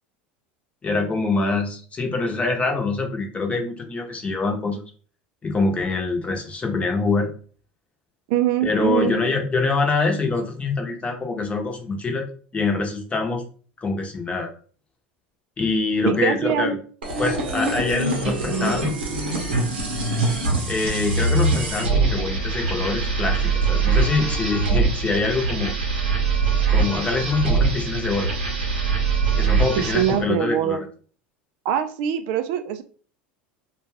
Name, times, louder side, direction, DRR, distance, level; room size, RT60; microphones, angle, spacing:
voice 1, 0.8-4.8 5.4-7.3 8.6-12.3 12.5-13.4 13.8-14.5 15.6-16.8 17.2-18.9 20.7-23.4 23.7-25.7 26.7-28.3 29.4-30.8, left 3 dB, 25° left, 2 dB, 0.8 m, -24 dB
voice 2, 8.3-9.1 16.1-16.7 29.8-30.8 31.6-32.8, right 10 dB, 65° right, 9 dB, 0.3 m, -23 dB
sound 1, 17.0-30.2, right 4 dB, 90° right, 0.8 m, -23 dB
2.4 x 2.3 x 3.2 m, 0.42 s
hypercardioid pair, 85°, 6 cm